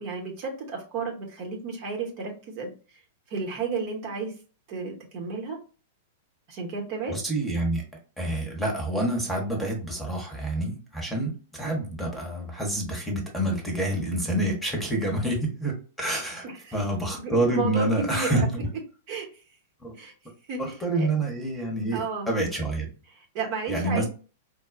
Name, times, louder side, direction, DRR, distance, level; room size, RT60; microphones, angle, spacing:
voice 1, 0.0-2.7 3.3-4.3 4.7-5.6 6.5-7.2 16.4-16.7 17.1-18.5 19.1-19.3 20.0-20.1 20.5-21.1 21.9-22.3 23.2-24.1, right 4 dB, 40° right, 0 dB, 1.0 m, -32 dB
voice 2, 7.1-7.8 8.2-16.5 16.7-18.7 19.8-19.9 20.6-22.9 23.7-24.1, right 1 dB, 5° left, 1 dB, 1.1 m, -27 dB
4.2 x 2.3 x 2.4 m, 0.35 s
figure-of-eight pair, 100°, 0 cm